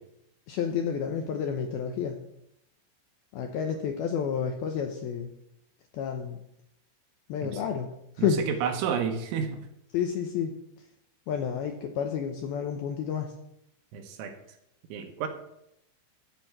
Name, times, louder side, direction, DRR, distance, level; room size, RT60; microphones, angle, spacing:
voice 1, 0.5-2.2 3.3-5.3 5.9-6.4 7.3-7.9 8.2-8.4 9.9-10.5 11.3-13.3, left 7 dB, 80° left, 4 dB, 2.2 m, -30 dB
voice 2, 8.2-9.6 13.9-14.4 14.9-15.3, right 7 dB, 80° right, 5 dB, 3.5 m, -31 dB
13.0 x 4.6 x 8.5 m, 0.79 s
omnidirectional pair, 5.4 m